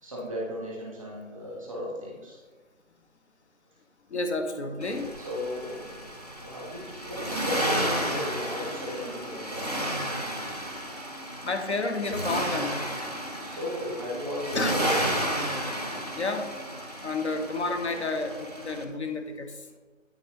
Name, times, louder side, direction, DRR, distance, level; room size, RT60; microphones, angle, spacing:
voice 1, 0.0-2.4 5.2-6.0 6.4-10.3 13.4-15.0, left 1 dB, ahead, -6 dB, 1.1 m, -36 dB
voice 2, 4.1-5.1 11.4-12.9 14.5-14.8 16.1-16.5 17.0-19.7, left 3 dB, 55° left, 6 dB, 1.1 m, -30 dB
Accelerating revving vroom, 4.8-18.8, right 1 dB, 30° left, 0.5 m, -32 dB
9.2 x 5.3 x 3.1 m, 1.4 s
figure-of-eight pair, 170°, 40 cm